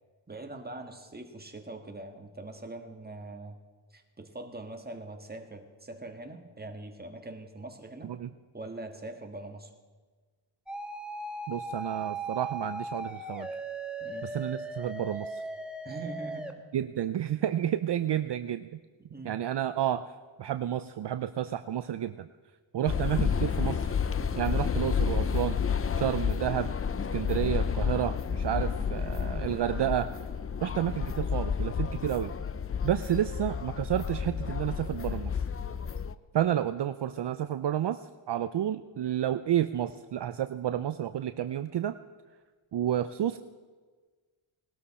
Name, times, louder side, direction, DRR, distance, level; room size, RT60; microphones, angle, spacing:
voice 1, 0.3-3.6 3.9-8.1 8.5-9.7 14.0-14.3 15.8-16.5 19.1-19.3, right 2 dB, 20° right, 4 dB, 1.7 m, -42 dB
sound 1, 10.7-16.5, right 2 dB, ahead, 1.3 m, -38 dB
voice 2, 11.5-13.5 14.3-15.4 16.7-18.7 19.2-20.1 20.4-22.3 22.7-24.0 24.4-25.6 25.9-26.7 27.1-30.1 30.6-32.3 32.8-35.3 36.3-38.0 38.3-42.0 42.7-43.4, right 11 dB, 60° right, 11 dB, 0.6 m, -30 dB
sound 2, 22.9-36.1, left 6 dB, 30° left, 0.5 m, -30 dB
19.0 x 12.5 x 4.3 m, 1.4 s
cardioid pair, 80°, 49 cm